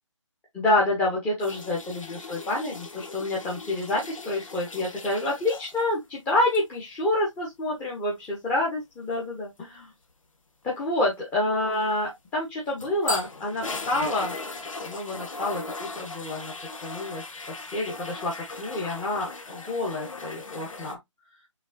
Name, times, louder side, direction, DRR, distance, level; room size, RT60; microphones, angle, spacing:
voice 1, 0.5-9.9 10.6-14.3 14.8-16.5 16.8-21.0, left 2 dB, 10° left, 1.1 m, -28 dB
sound 1, 1.4-6.0 6.3-6.6 12.4-20.9, left 3 dB, 85° left, 1.3 m, -38 dB
6.2 x 3.1 x 2.6 m
figure-of-eight pair, 155°, 16 cm